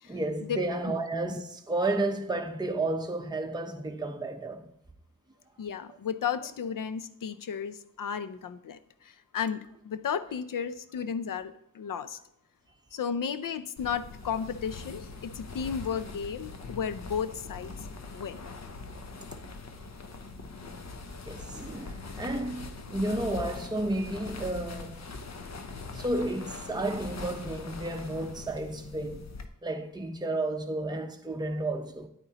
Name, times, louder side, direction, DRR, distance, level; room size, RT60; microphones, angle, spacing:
voice 1, 0.1-4.7 21.3-25.1 25.9-29.3 29.6-32.1, right 2 dB, 10° right, 0.8 m, -32 dB
voice 2, 5.6-12.2 12.9-17.7 18.1-18.4, left 7 dB, 75° left, 0.6 m, -34 dB
sound 1, 13.8-29.4, left 3 dB, 55° left, 0.9 m, -42 dB
10.0 x 8.9 x 2.9 m
cardioid pair, 50°, 33 cm